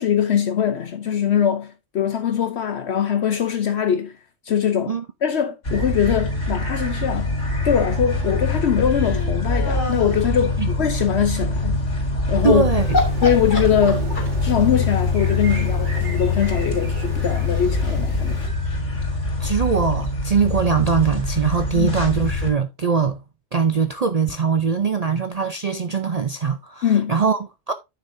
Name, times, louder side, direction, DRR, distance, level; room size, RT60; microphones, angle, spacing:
voice 1, 0.0-4.1 4.4-4.9 5.2-7.3 7.6-11.8 12.3-12.6 13.2-14.1 14.4-18.4 21.7-21.9 26.8-27.1, left 8 dB, 65° left, 1.0 m, -22 dB
sound 1, 5.6-22.5, left 3 dB, 90° left, 3.7 m, -24 dB
sound 2, 8.9-10.3 12.4-12.6 12.9-14.5, left 2 dB, 40° left, 2.4 m, -26 dB
voice 2, 12.4-13.0 19.4-23.2 23.5-27.7, right 6 dB, 45° right, 0.5 m, -21 dB
sound 3, 12.7-18.5, right 3 dB, 75° right, 2.1 m, -37 dB
9.5 x 6.8 x 2.7 m
omnidirectional pair, 1.2 m